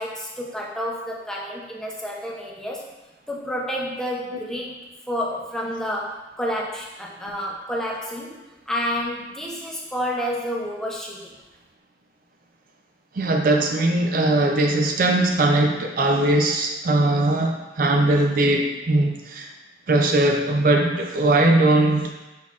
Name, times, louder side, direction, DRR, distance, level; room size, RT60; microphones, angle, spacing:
voice 1, 0.0-2.8 3.3-4.8 5.1-8.4 8.7-11.4, equal, 5° left, -4 dB, 0.6 m, -29 dB
voice 2, 13.1-19.5 19.9-22.1, right 2 dB, 50° right, 2 dB, 0.4 m, -20 dB
5.5 x 4.0 x 2.4 m, 1.1 s
head